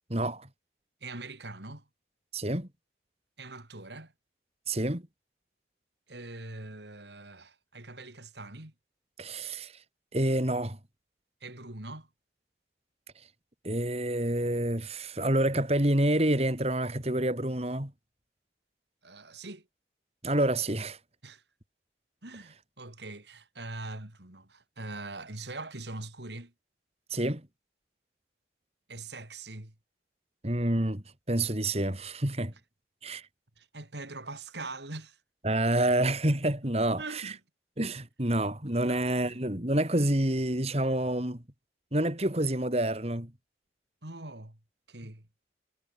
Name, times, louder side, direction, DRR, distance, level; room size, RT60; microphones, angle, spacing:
voice 1, 0.1-0.5 2.3-2.7 4.7-5.0 9.2-9.7 10.1-10.8 13.6-17.9 20.2-21.0 27.1-27.5 30.4-32.5 33.0-33.3 35.4-37.3 37.8-41.4 41.9-43.3, right 1 dB, 35° right, 3.2 m, -28 dB
voice 2, 1.0-1.9 3.4-4.1 6.1-8.7 11.4-12.1 19.0-19.7 21.2-21.4 22.2-26.5 28.9-29.7 33.6-35.2 36.6-37.4 38.9-39.4 44.0-44.6 44.9-45.3, right 2 dB, 75° right, 3.6 m, -42 dB
head